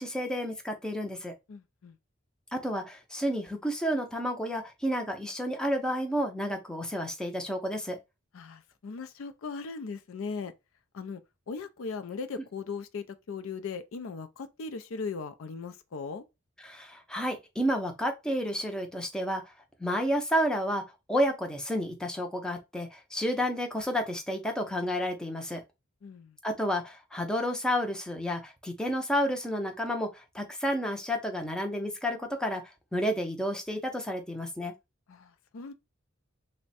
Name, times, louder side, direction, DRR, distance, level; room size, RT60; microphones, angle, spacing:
voice 1, 0.0-1.3 2.5-8.0 16.6-19.5 19.8-20.8 21.1-25.6 26.4-34.7, equal, 5° left, 0.5 m, -31 dB
voice 2, 1.5-1.9 8.3-10.5 10.9-11.2 11.5-16.2 26.0-26.4 35.1-35.7, left 4 dB, 70° left, 0.4 m, -38 dB
3.4 x 2.1 x 4.0 m
head